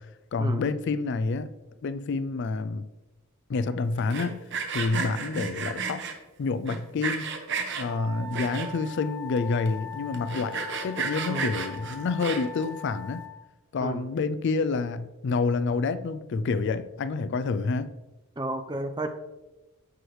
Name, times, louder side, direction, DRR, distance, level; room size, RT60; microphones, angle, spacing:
voice 1, 0.3-1.5 1.8-2.9 3.5-4.4 4.7-6.1 6.4-7.3 7.7-13.3 13.7-17.9, left 4 dB, 55° left, 14 dB, 0.3 m, -28 dB
Sawing, 4.0-6.1 6.7-7.9 8.3-8.9 9.4-9.5 9.7-9.8 10.1-12.6, right 5 dB, 55° right, 1.1 m, -32 dB
Wind instrument woodwind instrument, 7.8-13.4, left 4 dB, ahead, 1.6 m, -41 dB
voice 2, 18.4-19.1, right 1 dB, 20° right, 6 dB, 0.6 m, -32 dB
14.0 x 4.7 x 3.2 m, 1.1 s
head